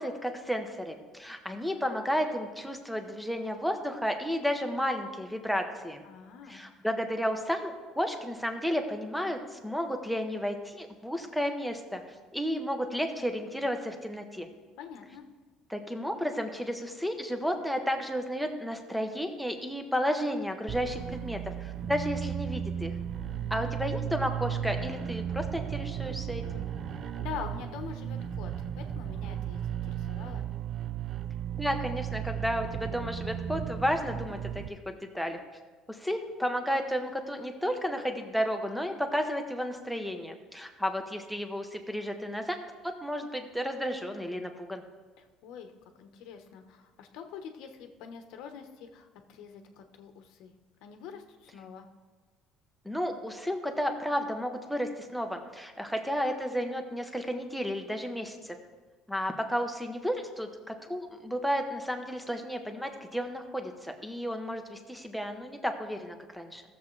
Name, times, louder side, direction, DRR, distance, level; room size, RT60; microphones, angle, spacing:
voice 1, 0.0-6.0 6.5-12.0 12.3-14.5 15.7-23.0 23.5-26.6 31.5-35.4 35.9-42.6 42.8-44.8 52.8-58.6 59.1-66.6, equal, ahead, 5 dB, 0.9 m, -32 dB
voice 2, 6.0-6.6 14.8-15.2 23.3-23.8 27.2-30.5 45.2-45.7 46.0-50.5 50.8-51.9, left 7 dB, 70° left, 6 dB, 1.0 m, -45 dB
sound 1, 20.7-34.7, right 9 dB, 40° right, 0.5 m, -35 dB
16.0 x 7.1 x 3.2 m, 1.4 s
cardioid pair, 145°, 0 cm